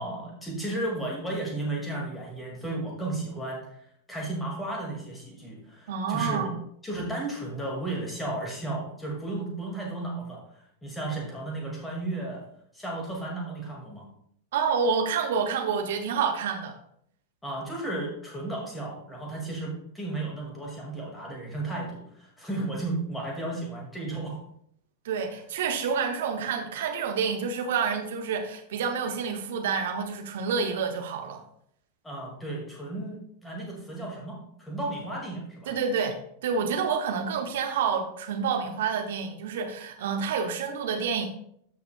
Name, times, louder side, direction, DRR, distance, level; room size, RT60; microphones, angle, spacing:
voice 1, 0.0-3.8 4.1-6.5 6.8-12.4 12.7-14.1 17.4-24.4 32.0-35.7, right 2 dB, 10° left, -2 dB, 1.9 m, -34 dB
voice 2, 5.9-6.6 14.5-16.8 25.0-31.4 35.7-41.3, right 6 dB, 55° right, 4 dB, 1.3 m, -28 dB
13.5 x 5.7 x 2.2 m, 0.69 s
figure-of-eight pair, 90°, 0 cm